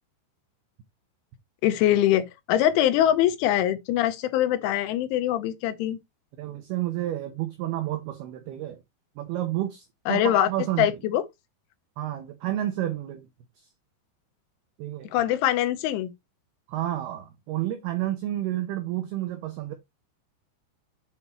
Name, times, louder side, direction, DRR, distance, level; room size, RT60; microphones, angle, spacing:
voice 1, 1.6-6.0 10.1-10.5 10.8-11.2 15.1-16.1, left 12 dB, 85° left, 3.2 m, -23 dB
voice 2, 6.4-8.8 9.2-10.9 12.0-13.3 13.6-13.7 14.8-15.1 16.7-19.7, right 13 dB, 85° right, 2.2 m, -30 dB
8.0 x 5.4 x 2.9 m
omnidirectional pair, 5.6 m